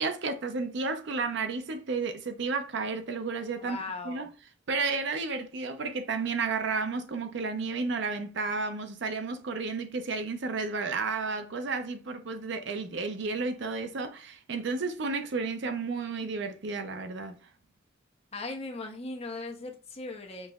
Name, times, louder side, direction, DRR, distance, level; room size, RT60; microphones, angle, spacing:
voice 1, 0.0-3.8 4.0-4.3 4.7-17.4, right 4 dB, 60° right, 0.5 m, -32 dB
voice 2, 3.6-4.3 18.3-20.5, left 3 dB, 30° left, 0.7 m, -38 dB
5.3 x 2.9 x 2.3 m
head